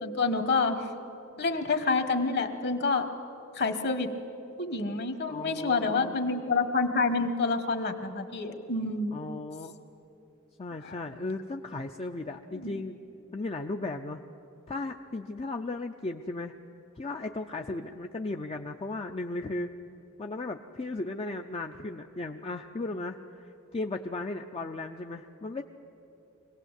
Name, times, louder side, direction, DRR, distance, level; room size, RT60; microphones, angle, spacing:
voice 1, 0.0-0.9 1.4-3.1 3.5-4.1 4.6-9.1 10.8-11.0 12.5-12.7, left 3 dB, 50° left, 8 dB, 1.5 m, -28 dB
voice 2, 5.3-6.2 9.1-9.7 10.6-13.0 13.3-14.2 14.7-16.5 17.0-19.7 20.2-23.2 23.4-25.6, left 2 dB, 25° left, 4 dB, 0.5 m, -36 dB
24.5 x 18.0 x 8.2 m, 3.0 s
head